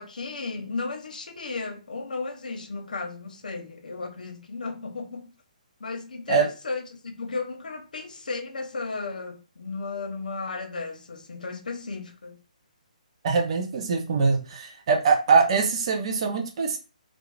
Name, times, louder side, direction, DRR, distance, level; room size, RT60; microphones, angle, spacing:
voice 1, 0.0-5.3 5.8-12.4, left 3 dB, 85° left, 0.6 m, -34 dB
voice 2, 13.2-16.8, right 4 dB, 45° right, 0.6 m, -23 dB
2.4 x 2.0 x 3.1 m
hypercardioid pair, 160°, 4 cm